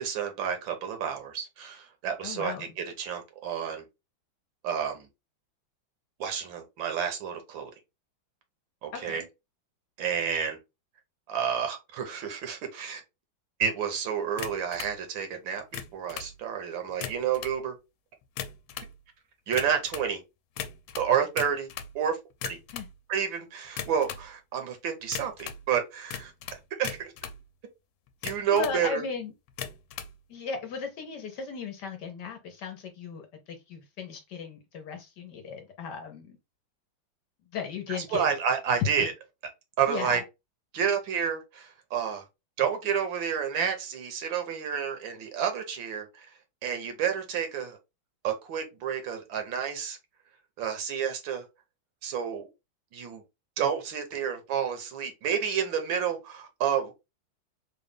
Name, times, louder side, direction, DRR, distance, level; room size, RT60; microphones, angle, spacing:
voice 1, 0.0-2.5 3.0-3.8 4.6-5.1 6.2-7.7 8.8-9.2 10.0-10.6 11.3-13.0 13.6-17.8 19.5-20.2 21.0-21.7 21.9-22.2 22.4-22.6 23.1-26.3 26.8-27.1 28.2-29.0 38.1-39.1 39.8-40.2 40.7-42.2 42.6-46.3 46.6-47.8 48.2-50.0 50.6-51.5 52.0-52.5 52.9-53.2 53.6-56.9, right 7 dB, 75° right, 1.6 m, -30 dB
voice 2, 2.2-2.7 8.9-9.3 22.7-22.9 28.2-29.3 30.3-36.4 37.5-38.3 38.8-38.9 39.9-40.2, left 6 dB, 65° left, 1.2 m, -36 dB
sound 1, 14.4-15.0 15.6-16.3 16.9-17.6 18.2-18.9 19.5-20.1 20.6-21.9 22.3-22.9 23.7-24.3 25.1-25.6 26.1-27.4 28.1-28.8 29.5-30.1, left 9 dB, 85° left, 1.4 m, -38 dB
3.9 x 2.3 x 3.4 m
omnidirectional pair, 2.2 m